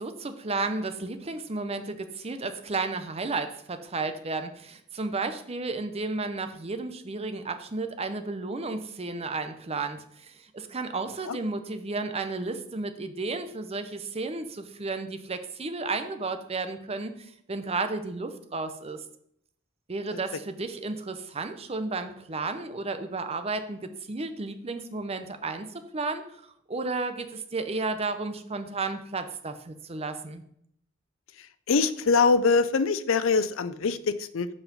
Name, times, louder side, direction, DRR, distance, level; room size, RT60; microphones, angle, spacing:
voice 1, 0.0-19.0 19.9-30.4, right 3 dB, 30° right, 8 dB, 0.7 m, -33 dB
voice 2, 31.4-34.5, left 4 dB, 80° left, 14 dB, 0.5 m, -24 dB
7.3 x 5.6 x 5.3 m, 0.71 s
head